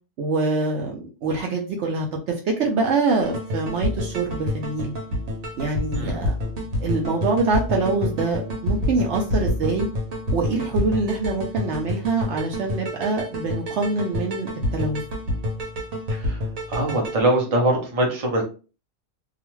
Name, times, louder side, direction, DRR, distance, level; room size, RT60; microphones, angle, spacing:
voice 1, 0.2-4.9 5.6-6.3 6.8-9.9 10.3-15.0, right 3 dB, 70° right, 1 dB, 0.8 m, -25 dB
sound 1, 3.2-17.2, left 1 dB, 85° right, 1.1 m, -28 dB
voice 2, 16.7-18.4, right 1 dB, 35° right, 0 dB, 0.7 m, -22 dB
2.4 x 2.4 x 3.0 m, 0.35 s
omnidirectional pair, 1.3 m